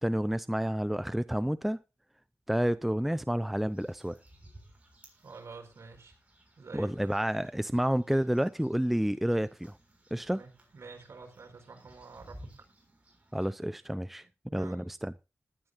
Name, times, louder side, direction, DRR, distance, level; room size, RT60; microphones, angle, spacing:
voice 1, 0.0-1.8 2.5-4.2 6.7-9.8 10.1-10.4 13.3-14.3 14.5-15.1, equal, 5° right, 0.5 m, -29 dB
sound 1, 3.6-13.5, right 1 dB, 25° right, 6.7 m, -57 dB
voice 2, 5.2-6.1 6.6-7.1 10.3-12.7 14.4-14.9, right 4 dB, 60° right, 4.8 m, -49 dB
19.0 x 12.0 x 2.6 m
cardioid pair, 75°, 5 cm